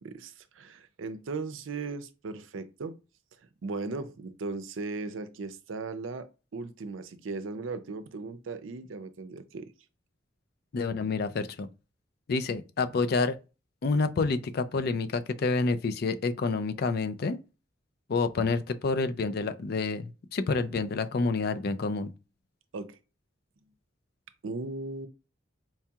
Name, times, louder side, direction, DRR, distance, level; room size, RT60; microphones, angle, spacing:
voice 1, 0.0-3.0 3.6-9.7 22.7-23.0 24.4-25.1, right 3 dB, 80° right, 0.5 m, -37 dB
voice 2, 10.7-11.7 12.3-13.4 13.8-17.4 18.1-22.1, left 4 dB, 50° left, 0.4 m, -28 dB
4.4 x 2.8 x 2.3 m
head